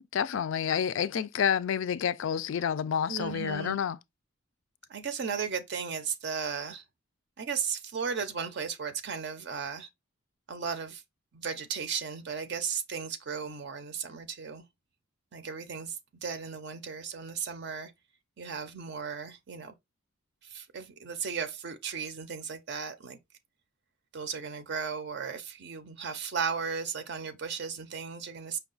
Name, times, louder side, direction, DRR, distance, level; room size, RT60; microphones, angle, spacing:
voice 1, 0.1-4.0, left 8 dB, 65° left, 0.3 m, -29 dB
voice 2, 3.1-3.8 4.9-6.8 7.4-9.9 10.5-11.0 11.3-14.6 15.3-15.9 16.2-17.9 18.4-19.7 20.5-23.2 24.1-28.6, right 6 dB, 55° right, 0.5 m, -35 dB
5.4 x 2.3 x 3.8 m
head